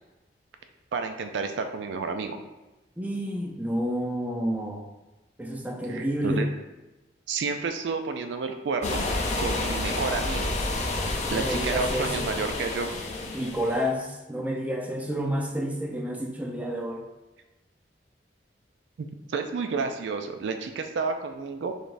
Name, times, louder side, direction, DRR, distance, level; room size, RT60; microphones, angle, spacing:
voice 1, 0.9-2.4 5.9-6.5 7.3-9.0 9.4-10.5 11.3-12.9 19.0-21.8, right 4 dB, 90° right, 6 dB, 0.4 m, -30 dB
voice 2, 3.0-4.8 5.4-6.5 11.3-12.2 13.3-17.1, equal, 10° right, 1 dB, 0.5 m, -29 dB
sound 1, 8.8-13.9, left 2 dB, 40° left, 0.5 m, -29 dB
4.0 x 3.3 x 2.5 m, 1.1 s
head